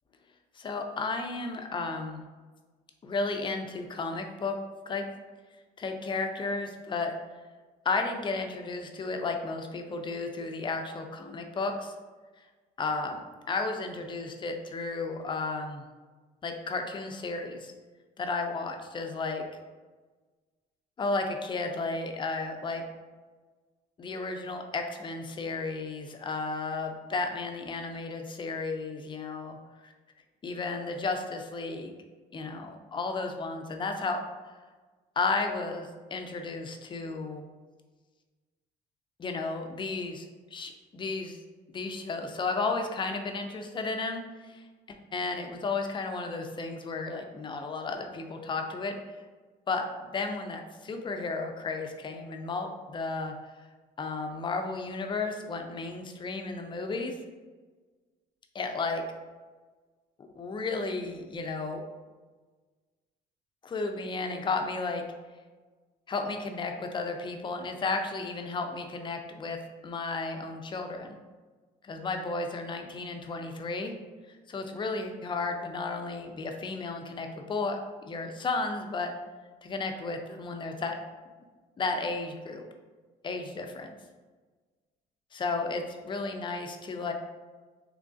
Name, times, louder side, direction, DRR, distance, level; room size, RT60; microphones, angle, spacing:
voice 1, 0.6-2.2 3.0-4.6 4.9-5.1 5.8-7.1 7.8-11.9 12.8-13.2 13.5-15.8 16.4-17.7 18.2-19.4 21.0-22.8 24.0-29.6 29.8-29.9 30.4-31.9 32.3-34.2 35.2-37.4 39.2-40.3 40.5-41.4 41.7-49.0 49.7-53.7 54.0-57.1 58.5-59.0 60.2-61.8 63.6-65.0 66.1-69.6 69.8-71.2 71.8-73.9 74.3-79.1 79.6-80.9 81.8-82.6 83.2-83.9 85.3-87.1, left 3 dB, 30° left, 4 dB, 0.4 m, -33 dB
3.5 x 3.1 x 2.5 m, 1.3 s
cardioid pair, 110°, 17 cm